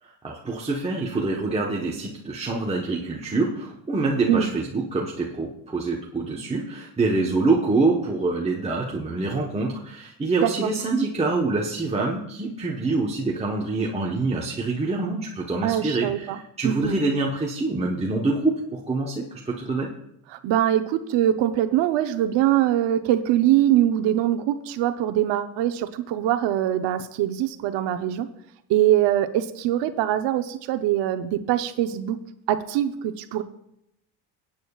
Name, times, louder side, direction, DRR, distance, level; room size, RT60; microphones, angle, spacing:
voice 1, 0.0-19.9, right 3 dB, 15° right, -2 dB, 1.1 m, -26 dB
voice 2, 15.6-16.4 16.6-16.9 20.4-28.3 28.7-32.2 32.5-33.4, right 12 dB, 70° right, 10 dB, 0.9 m, -23 dB
20.5 x 8.9 x 2.4 m, 0.77 s
cardioid pair, 115°, 45 cm